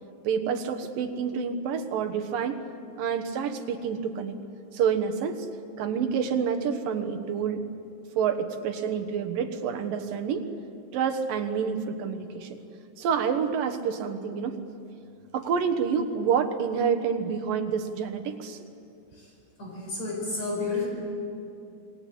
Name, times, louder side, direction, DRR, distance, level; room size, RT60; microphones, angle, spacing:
voice 1, 0.2-2.6 3.0-4.4 4.7-5.5 5.8-7.6 8.1-10.5 10.9-12.6 13.0-14.6 15.3-18.6, right 7 dB, 75° right, 7 dB, 3.0 m, -28 dB
voice 2, 19.6-20.9, left 3 dB, 50° left, -1 dB, 6.2 m, -30 dB
27.5 x 21.5 x 8.7 m, 2.6 s
omnidirectional pair, 4.1 m